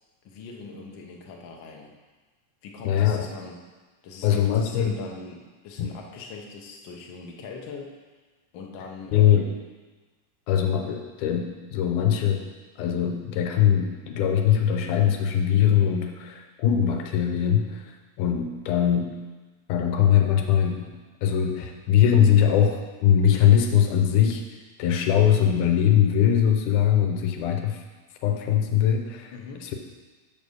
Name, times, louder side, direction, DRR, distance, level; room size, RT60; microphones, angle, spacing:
voice 1, 0.2-1.9 2.6-3.6 4.0-7.9 8.5-9.4 29.3-29.7, left 4 dB, 70° left, 1 dB, 1.1 m, -41 dB
voice 2, 2.9-3.3 4.2-4.9 5.8-5.9 9.1-9.5 10.5-12.4 12.8-19.1 19.7-20.9 21.2-24.4 24.8-27.8 28.2-29.3 29.6-29.7, left 9 dB, 85° left, 4 dB, 2.3 m, -21 dB
6.7 x 5.3 x 6.5 m, 1.3 s
omnidirectional pair, 3.5 m